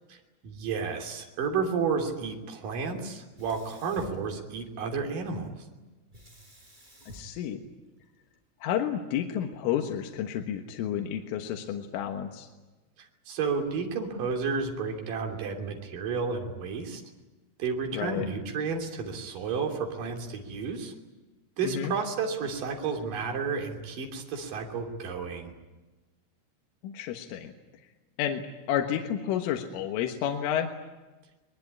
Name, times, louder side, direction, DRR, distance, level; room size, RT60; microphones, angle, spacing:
voice 1, 0.4-5.5 13.3-17.0 17.6-20.9 21.6-25.5, right 5 dB, 45° right, 2 dB, 4.3 m, -31 dB
Sink (filling or washing), 3.3-5.0 6.1-8.4, equal, 10° right, 5.1 m, -51 dB
voice 2, 7.1-7.6 8.6-12.5 17.9-18.3 21.6-21.9 26.8-27.5 28.2-28.4 28.7-30.7, left 10 dB, 75° left, 3 dB, 3.9 m, -30 dB
23.5 x 21.5 x 9.8 m, 1.2 s
omnidirectional pair, 5.9 m